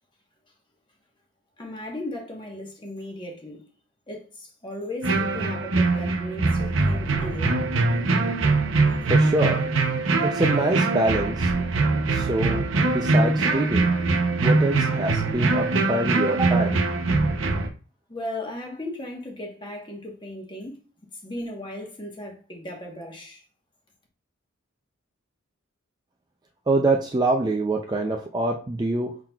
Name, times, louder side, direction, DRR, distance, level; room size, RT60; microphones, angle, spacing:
voice 1, 1.6-3.7 4.1-7.7 18.1-20.8 21.2-23.4, left 1 dB, 20° left, 1.1 m, -36 dB
sound 1, 5.0-17.7, right 3 dB, 70° right, 0.7 m, -22 dB
voice 2, 9.1-9.6 10.2-11.6 12.1-13.9 14.4-16.8 26.7-29.1, right 2 dB, 20° right, 0.4 m, -25 dB
6.0 x 3.8 x 2.3 m
head